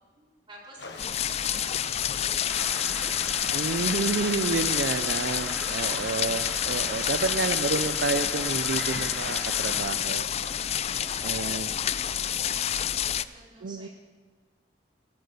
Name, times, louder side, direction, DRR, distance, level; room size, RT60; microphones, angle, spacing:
voice 1, 0.1-5.2 5.5-6.2 7.2-7.6 10.7-13.9, right 1 dB, 30° right, -4 dB, 4.1 m, -49 dB
sound 1, 0.8-11.4, left 3 dB, 80° left, 1.2 m, -45 dB
sound 2, 1.0-13.2, left 10 dB, 35° left, 0.4 m, -28 dB
sound 3, 2.5-9.8, right 1 dB, 5° right, 4.1 m, -39 dB
voice 2, 3.5-10.3 11.2-11.7 13.6-13.9, right 4 dB, 80° right, 10 dB, 0.5 m, -30 dB
19.0 x 8.1 x 6.9 m, 1.5 s
head